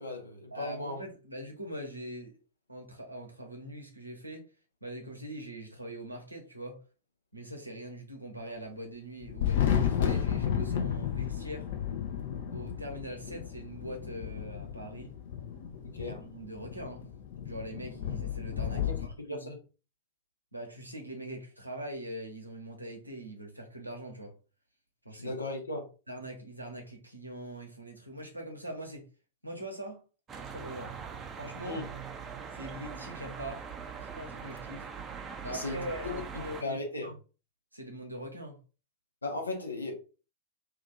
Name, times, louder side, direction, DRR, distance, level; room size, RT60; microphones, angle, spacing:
voice 1, 0.0-1.0 15.8-16.2 18.7-19.6 25.2-25.9 31.7-31.9 35.4-37.1 39.2-39.9, left 2 dB, 80° left, 1.0 m, -37 dB
voice 2, 0.5-2.4 2.7-4.5 4.8-6.8 7.3-11.7 12.5-15.1 16.0-17.1 17.4-19.5 20.5-24.3 25.0-25.3 26.1-29.0 29.4-30.0 30.5-31.0 31.4-31.8 32.5-33.6 34.0-34.9 35.4-37.1 37.7-38.6, right 1 dB, 85° right, 1.0 m, -42 dB
Thunder, 9.2-19.1, left 9 dB, 55° left, 0.6 m, -32 dB
sound 1, 30.3-36.6, right 6 dB, 20° right, 0.5 m, -42 dB
2.8 x 2.5 x 3.8 m
figure-of-eight pair, 95°, 0 cm